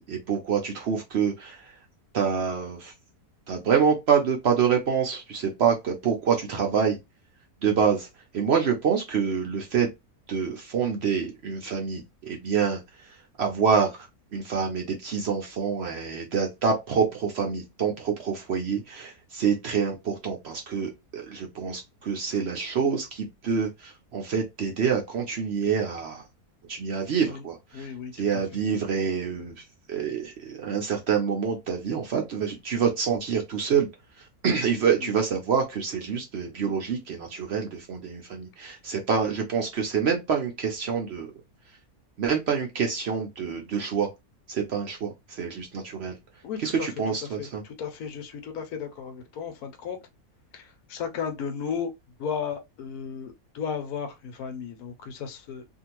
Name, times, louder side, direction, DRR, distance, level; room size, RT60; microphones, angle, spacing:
voice 1, 0.1-1.7 2.1-2.9 3.5-7.0 7.6-8.1 8.3-9.9 10.3-13.1 13.4-26.2 26.7-27.9 28.1-29.6 29.9-33.9 34.2-41.3 42.2-44.1 44.5-46.2 46.6-47.6, right 6 dB, 60° right, 0.7 m, -26 dB
voice 2, 27.7-28.4 35.0-35.2 46.4-46.9 47.4-50.0 50.5-51.9 52.2-55.7, left 7 dB, 85° left, 1.2 m, -34 dB
2.7 x 2.5 x 2.9 m
omnidirectional pair, 1.6 m